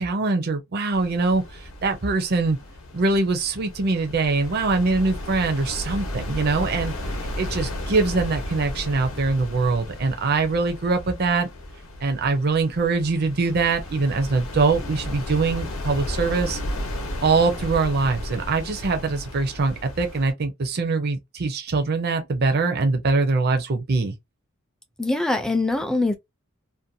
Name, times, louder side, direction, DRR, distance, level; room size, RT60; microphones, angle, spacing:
voice 1, 0.0-2.6 2.9-6.9 7.4-11.5 12.0-16.6 17.2-24.1, right 3 dB, 50° right, 0.5 m, -23 dB
sound 1, 0.9-20.3, left 1 dB, 75° left, 0.8 m, -34 dB
voice 2, 25.0-26.2, left 2 dB, 5° left, 0.4 m, -23 dB
2.6 x 2.1 x 2.6 m
head